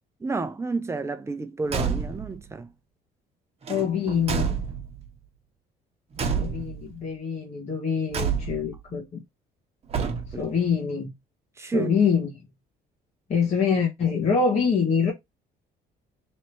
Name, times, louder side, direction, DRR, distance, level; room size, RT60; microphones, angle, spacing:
voice 1, 0.2-2.7 10.3-10.4 11.6-11.9, right 3 dB, 15° right, 0.7 m, -30 dB
Car / Truck / Slam, 1.6-2.4 3.6-5.1 6.1-6.9 8.1-8.8 9.9-10.6, right 6 dB, 35° right, 1.1 m, -29 dB
voice 2, 3.7-4.6 6.4-9.2 10.4-11.1 11.7-12.3 13.3-15.1, left 6 dB, 40° left, 1.4 m, -25 dB
3.3 x 2.9 x 4.5 m
cardioid pair, 110°, 17 cm